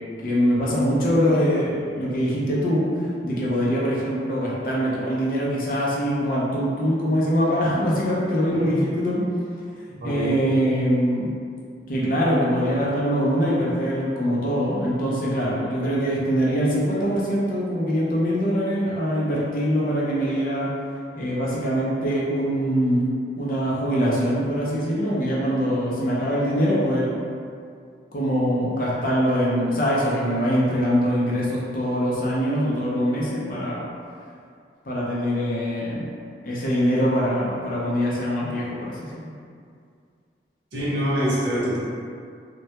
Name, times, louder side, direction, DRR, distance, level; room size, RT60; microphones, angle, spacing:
voice 1, 0.2-2.9 3.2-9.2 10.0-11.3 11.9-20.7 21.1-23.0 23.4-27.1 28.1-33.8 34.9-36.1 36.4-38.9, equal, 50° left, -5 dB, 0.5 m, -23 dB
voice 2, 10.0-10.4 40.7-41.8, equal, 85° right, -8 dB, 0.7 m, -25 dB
2.2 x 2.1 x 2.8 m, 2.3 s
head